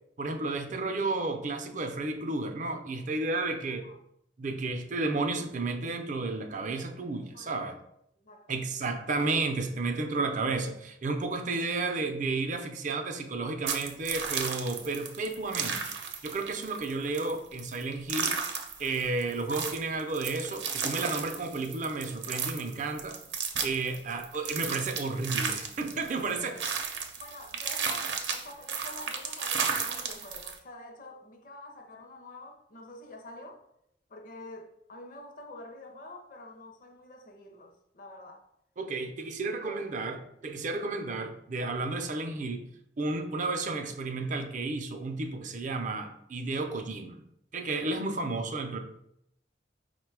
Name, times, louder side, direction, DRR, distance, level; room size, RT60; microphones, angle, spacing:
voice 1, 0.2-3.9 4.4-7.8 8.5-15.8 16.2-18.4 18.8-23.2 23.6-26.6 38.8-42.6 43.0-47.2 47.5-48.8, right 3 dB, 45° right, 0.5 m, -32 dB
voice 2, 7.1-7.5 8.2-8.6 26.1-33.6 34.1-38.4 39.6-39.9, left 2 dB, 50° left, 0.6 m, -47 dB
sound 1, 13.7-30.6, right 6 dB, 90° right, 0.7 m, -34 dB
5.2 x 2.2 x 4.6 m
head